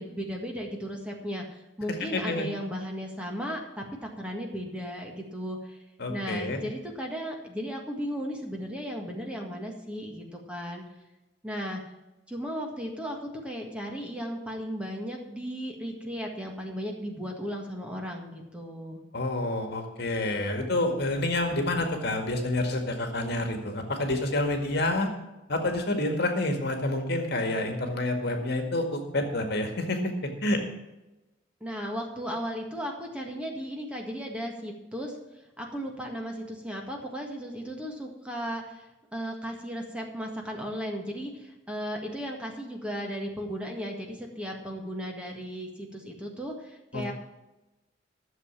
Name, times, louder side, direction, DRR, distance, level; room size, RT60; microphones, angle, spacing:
voice 1, 0.0-5.8 6.1-10.8 11.4-11.8 12.3-19.0 31.6-35.2 35.6-47.1, equal, 5° right, 0 dB, 1.7 m, -35 dB
voice 2, 2.0-2.5 6.0-6.6 19.1-25.1 25.5-30.6 46.9-47.1, left 2 dB, 55° left, 4 dB, 1.9 m, -28 dB
12.5 x 7.2 x 7.2 m, 1.0 s
head